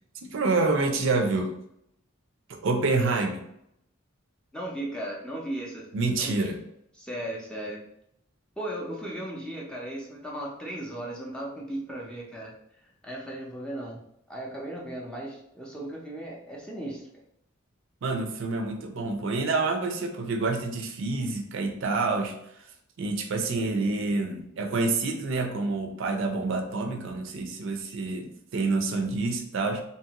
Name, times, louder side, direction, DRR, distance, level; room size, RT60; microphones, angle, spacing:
voice 1, 0.2-1.5 2.5-3.4 5.9-6.6 18.0-22.3 23.0-29.8, right 3 dB, 60° right, 4 dB, 0.4 m, -27 dB
voice 2, 4.5-5.9 6.2-6.5 6.9-7.8 8.6-12.5 13.0-14.0 14.3-17.1, right 1 dB, 5° left, -3 dB, 0.5 m, -36 dB
2.9 x 2.4 x 2.8 m, 0.74 s
head